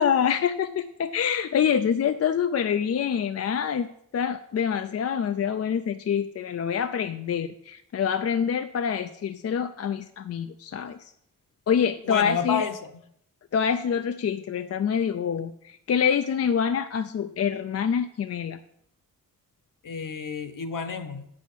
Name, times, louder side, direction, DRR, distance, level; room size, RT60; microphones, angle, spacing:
voice 1, 0.0-3.9 4.1-11.1 11.7-12.7 13.5-18.6, left 7 dB, 45° left, 9 dB, 0.5 m, -26 dB
voice 2, 12.0-12.9 19.8-21.3, left 6 dB, 65° left, 9 dB, 1.2 m, -30 dB
8.3 x 6.3 x 8.3 m, 0.72 s
wide cardioid pair, 135°, 34 cm